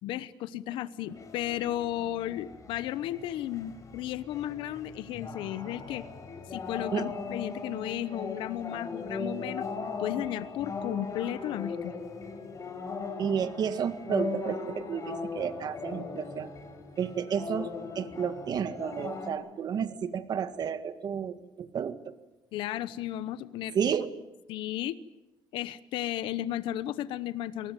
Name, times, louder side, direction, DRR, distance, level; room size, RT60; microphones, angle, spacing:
voice 1, 0.0-6.0 6.5-9.7 10.0-11.9 22.5-23.9 24.5-25.0 25.5-27.7, left 12 dB, 85° left, 15 dB, 0.9 m, -34 dB
sound 1, 1.1-19.3, left 4 dB, 40° left, 5.7 m, -39 dB
voice 2, 13.2-16.5 17.0-17.7 18.0-22.1 23.7-24.1, right 7 dB, 55° right, 11 dB, 1.9 m, -31 dB
27.0 x 19.5 x 9.1 m, 1.0 s
cardioid pair, 100°, 8 cm